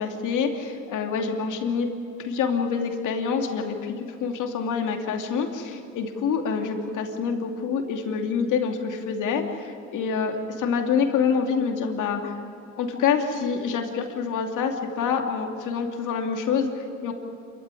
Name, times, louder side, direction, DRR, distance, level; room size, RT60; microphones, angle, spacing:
voice 1, 0.0-1.9 2.2-12.3 12.8-17.1, left 6 dB, 80° left, 4 dB, 2.8 m, -26 dB
27.0 x 14.5 x 9.9 m, 2.8 s
cardioid pair, 90°, 30 cm